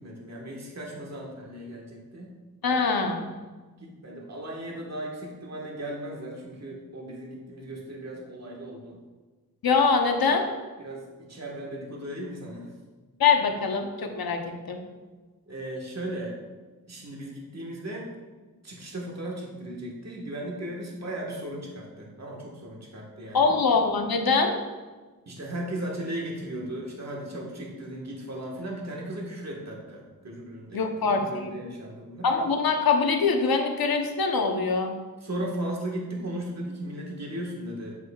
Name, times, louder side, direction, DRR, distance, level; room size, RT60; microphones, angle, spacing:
voice 1, 0.0-2.3 3.8-9.0 10.8-12.7 15.5-16.4 16.9-18.1 18.6-23.6 25.3-32.3 35.2-38.0, right 1 dB, 45° right, -2 dB, 1.5 m, -36 dB
voice 2, 2.6-3.2 9.6-10.5 13.2-14.8 23.3-24.5 30.7-31.5 32.2-34.9, left 4 dB, 80° left, 4 dB, 0.8 m, -23 dB
7.8 x 7.4 x 2.3 m, 1.3 s
cardioid pair, 55°, 36 cm